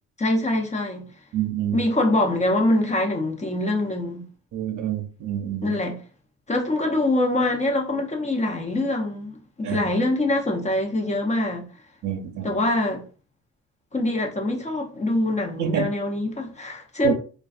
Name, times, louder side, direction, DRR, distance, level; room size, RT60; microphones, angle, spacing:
voice 1, 0.2-1.1 1.7-4.3 5.6-6.0 6.5-11.7 12.4-13.1 13.9-17.1, left 1 dB, 25° left, 0.7 m, -24 dB
voice 2, 1.3-1.8 4.5-5.8 9.6-9.8 12.0-12.6 15.6-15.9 17.0-17.1, right 8 dB, 70° right, 0.6 m, -27 dB
2.5 x 2.3 x 2.4 m
cardioid pair, 90°, 30 cm